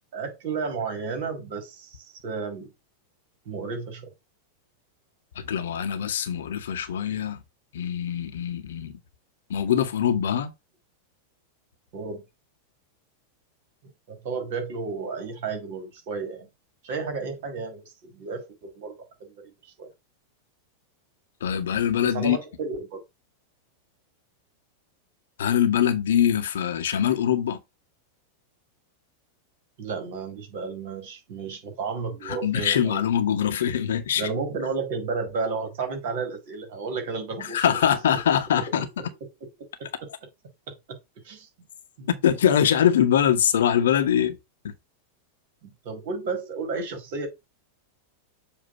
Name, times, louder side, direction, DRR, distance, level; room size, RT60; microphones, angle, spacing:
voice 1, 0.1-2.7 3.5-4.1 11.9-12.2 14.1-16.5 16.8-18.9 19.2-19.9 22.0-23.0 29.8-33.0 34.2-37.8 40.7-41.0 41.2-41.5 42.0-42.1 45.6-47.3, right 4 dB, 50° right, 2.1 m, -32 dB
voice 2, 5.3-7.4 7.7-9.0 9.5-10.5 21.4-22.4 25.4-27.6 32.2-34.3 37.4-38.9 42.2-44.4 44.6-44.7, left 9 dB, 60° left, 0.9 m, -23 dB
7.2 x 2.6 x 5.4 m
figure-of-eight pair, 90°, 0 cm